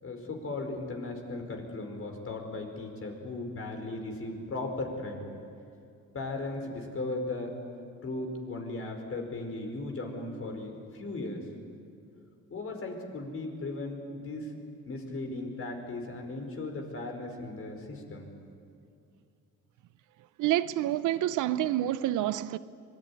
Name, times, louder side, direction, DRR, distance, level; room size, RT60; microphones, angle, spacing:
voice 1, 0.0-5.3 6.1-7.6 8.0-11.4 12.5-14.5 14.8-18.3, left 2 dB, 45° left, 5.0 m, -37 dB
voice 2, 20.4-22.6, right 13 dB, 85° right, 0.8 m, -28 dB
24.5 x 20.0 x 9.8 m
cardioid pair, 90°, 30 cm